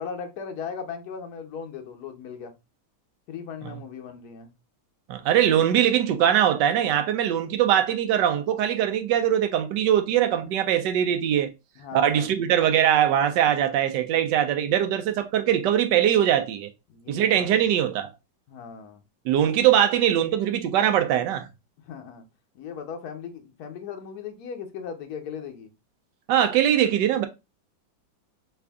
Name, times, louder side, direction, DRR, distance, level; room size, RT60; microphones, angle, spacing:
voice 1, 0.0-2.5 3.3-4.5 11.8-12.4 16.9-17.7 18.5-19.0 21.8-22.2 22.5-25.7, left 6 dB, 65° left, 1.1 m, -38 dB
voice 2, 5.1-11.5 11.9-16.7 17.1-18.1 19.3-21.5 26.3-27.3, right 10 dB, 75° right, 1.1 m, -21 dB
3.4 x 2.5 x 3.4 m
omnidirectional pair, 2.0 m